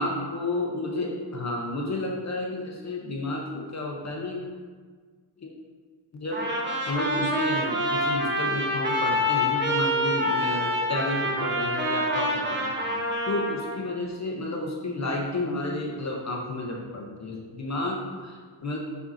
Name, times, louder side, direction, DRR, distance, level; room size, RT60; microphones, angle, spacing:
voice 1, 0.0-4.4 5.4-5.5 6.1-6.5 6.9-13.0 13.3-18.8, left 2 dB, 35° left, -1 dB, 0.6 m, -31 dB
Trumpet, 6.3-13.8, equal, 25° right, 0.8 m, -26 dB
7.2 x 5.3 x 2.6 m, 1.5 s
wide cardioid pair, 180°, 48 cm